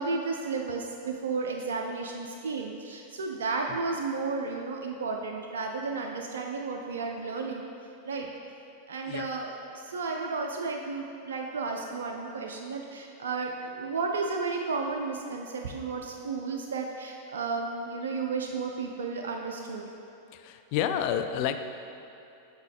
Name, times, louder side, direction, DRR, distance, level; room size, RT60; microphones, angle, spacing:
voice 1, 0.0-7.7 8.1-8.3 8.9-19.8, right 4 dB, 65° right, 1 dB, 0.4 m, -33 dB
voice 2, 20.3-21.6, left 9 dB, 45° left, 8 dB, 0.3 m, -29 dB
7.3 x 3.9 x 3.5 m, 2.7 s
figure-of-eight pair, 90°, 0 cm